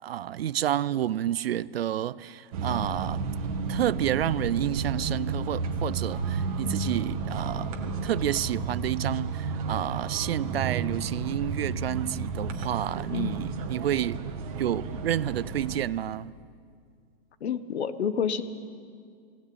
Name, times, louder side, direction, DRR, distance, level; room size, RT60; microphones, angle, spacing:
voice 1, 0.0-3.2 3.7-14.2 14.6-16.3, right 11 dB, 65° right, 0.6 m, -30 dB
sound 1, 2.5-15.8, right 4 dB, 35° right, 1.9 m, -32 dB
voice 2, 17.4-18.4, left 7 dB, 70° left, 1.5 m, -29 dB
18.5 x 18.5 x 8.9 m
hypercardioid pair, 170°, 33 cm